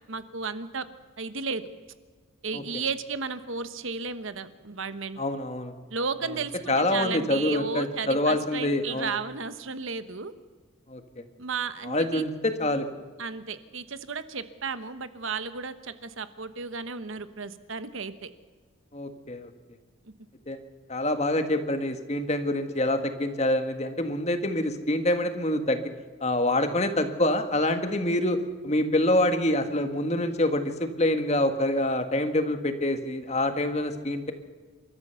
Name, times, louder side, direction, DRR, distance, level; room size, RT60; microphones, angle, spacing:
voice 1, 0.1-0.9 1.2-1.6 2.4-5.2 5.9-10.3 11.4-12.2 13.2-18.3 20.0-20.1, right 4 dB, 65° right, 12 dB, 1.1 m, -34 dB
voice 2, 5.2-5.7 6.7-9.1 10.9-11.2 11.8-12.9 18.9-19.5 20.5-20.6 20.9-25.9 26.2-34.3, left 1 dB, 30° left, 8 dB, 1.6 m, -26 dB
29.0 x 13.5 x 7.0 m, 1.4 s
head